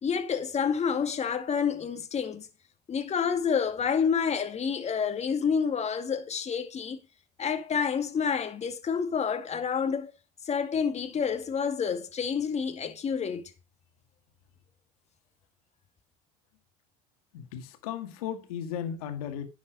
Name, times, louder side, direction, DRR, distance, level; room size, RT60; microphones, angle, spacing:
voice 1, 0.0-2.5 2.9-7.0 7.4-10.1 10.4-13.5, left 6 dB, 35° left, 2.1 m, -28 dB
voice 2, 17.3-19.5, left 9 dB, 80° left, 2.0 m, -35 dB
10.0 x 7.3 x 5.1 m
hypercardioid pair, 75°, 18 cm